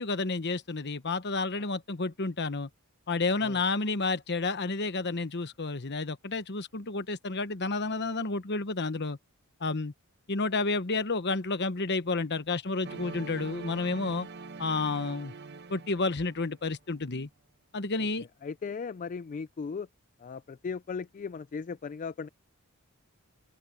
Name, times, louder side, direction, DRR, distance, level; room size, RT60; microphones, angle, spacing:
voice 1, 0.0-2.7 3.1-9.2 9.6-9.9 10.3-14.3 14.6-15.3 15.7-17.3 17.7-18.3, left 3 dB, 50° left, 1.1 m, -30 dB
sound 1, 12.8-16.7, right 4 dB, 50° right, 0.9 m, -44 dB
voice 2, 18.2-19.9 20.2-22.3, left 5 dB, 35° left, 0.3 m, -37 dB
open air
head